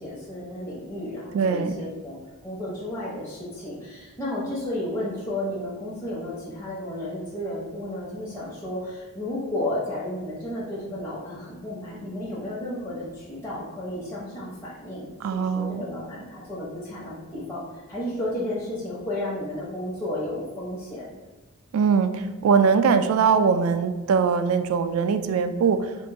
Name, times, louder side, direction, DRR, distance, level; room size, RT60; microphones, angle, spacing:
voice 1, 0.0-2.2 2.4-21.1, left 1 dB, 10° left, -9 dB, 0.8 m, -32 dB
voice 2, 1.3-1.7 15.2-15.8 21.7-25.8, right 6 dB, 85° right, 9 dB, 0.3 m, -21 dB
3.7 x 2.5 x 3.8 m, 1.2 s
head